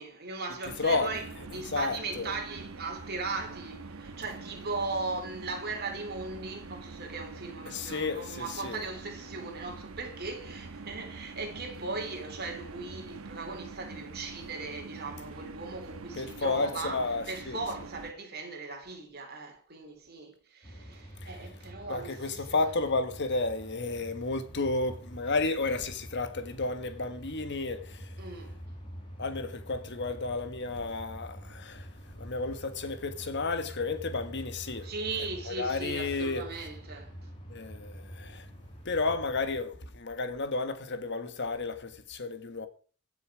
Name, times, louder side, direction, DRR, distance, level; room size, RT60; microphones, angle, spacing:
voice 1, 0.0-22.5 28.2-28.6 34.8-37.3, right 3 dB, 50° right, 3.4 m, -38 dB
sound 1, 0.6-18.1, right 3 dB, 80° right, 1.1 m, -45 dB
voice 2, 0.8-1.2 1.5-2.3 7.7-8.8 16.1-17.6 21.2-21.4 21.9-28.1 29.2-34.9 35.5-36.5 37.5-38.5 38.8-42.7, left 3 dB, 55° left, 1.4 m, -32 dB
sound 2, 20.6-39.6, equal, 25° left, 4.6 m, -46 dB
16.0 x 6.9 x 4.9 m
head